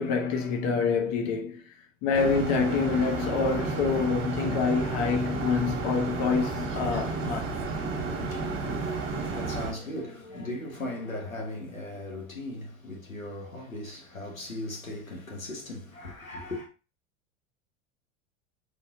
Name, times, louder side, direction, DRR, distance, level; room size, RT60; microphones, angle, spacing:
voice 1, 0.0-1.6 2.0-7.5, left 5 dB, 45° left, 0.9 m, -26 dB
sound 1, 2.1-9.7, right 3 dB, 30° right, 1.4 m, -32 dB
voice 2, 8.1-16.7, left 1 dB, 90° left, 1.3 m, -38 dB
4.2 x 3.3 x 2.9 m
figure-of-eight pair, 80°, 39 cm